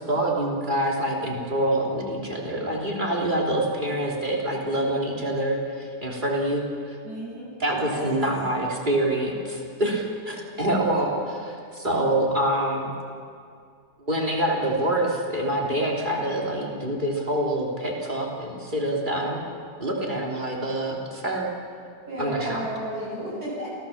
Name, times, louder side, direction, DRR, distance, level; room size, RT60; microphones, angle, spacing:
voice 1, 0.0-7.0 7.6-12.9 14.0-19.4 19.8-21.5 22.2-22.6, right 1 dB, 25° right, -1 dB, 3.4 m, -26 dB
voice 2, 7.0-7.5 7.9-8.1 10.4-10.5 22.0-23.7, right 1 dB, 65° right, -5 dB, 8.6 m, -33 dB
28.0 x 16.0 x 7.2 m, 2.3 s
omnidirectional pair, 1.8 m